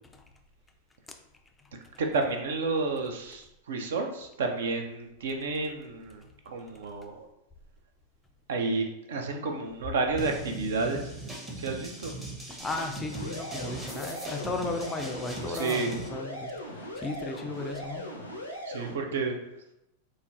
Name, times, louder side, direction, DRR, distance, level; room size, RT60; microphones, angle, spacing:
voice 1, 1.7-7.3 8.5-11.2 11.6-12.1 15.5-16.0 18.7-19.4, right 3 dB, 60° right, 4 dB, 0.4 m, -31 dB
sound 1, 10.2-16.1, right 2 dB, 15° right, 0.7 m, -40 dB
voice 2, 12.6-18.1, left 3 dB, 15° left, 4 dB, 0.3 m, -35 dB
sound 2, 13.1-18.9, equal, 85° left, 0.5 m, -39 dB
3.9 x 2.0 x 2.4 m, 0.84 s
figure-of-eight pair, 90°, 0 cm